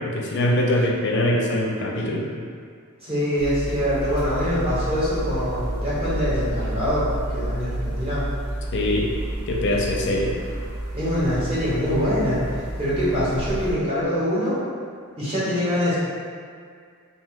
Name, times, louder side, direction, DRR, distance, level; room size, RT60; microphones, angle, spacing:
voice 1, 0.0-2.3 8.7-9.1 9.5-10.3, left 1 dB, 50° left, -1 dB, 0.4 m, -23 dB
voice 2, 3.0-8.3 10.9-12.4 12.8-14.6 15.2-16.0, equal, 25° right, -11 dB, 1.0 m, -24 dB
sound 1, 3.4-13.7, right 1 dB, 75° right, 0.5 m, -30 dB
2.7 x 2.2 x 3.5 m, 2.1 s
head